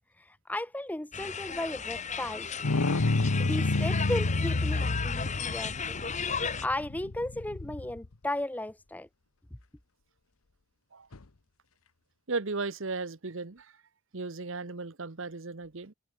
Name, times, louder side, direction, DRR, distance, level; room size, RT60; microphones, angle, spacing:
voice 1, 0.2-2.5 3.4-6.1 6.4-9.1, left 1 dB, 5° left, 0.5 m, -35 dB
sound 1, 1.1-6.7, left 6 dB, 35° left, 3.1 m, -35 dB
sound 2, 2.6-8.1 11.1-11.2, left 2 dB, 75° left, 1.0 m, -29 dB
voice 2, 12.3-13.7 14.1-15.9, right 3 dB, 60° right, 1.0 m, -36 dB
head